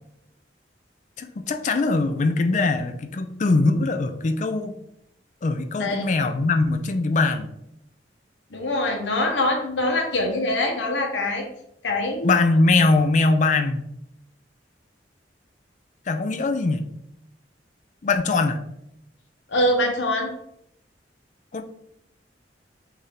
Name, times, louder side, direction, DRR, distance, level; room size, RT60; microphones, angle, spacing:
voice 1, 1.2-4.7 5.4-7.5 12.2-13.8 16.1-16.8 18.0-18.6 21.5-21.6, left 3 dB, 45° left, 7 dB, 0.4 m, -21 dB
voice 2, 8.5-11.4 11.8-12.4 19.5-20.3, left 1 dB, 90° left, 3 dB, 0.9 m, -24 dB
5.9 x 2.7 x 3.3 m, 0.77 s
head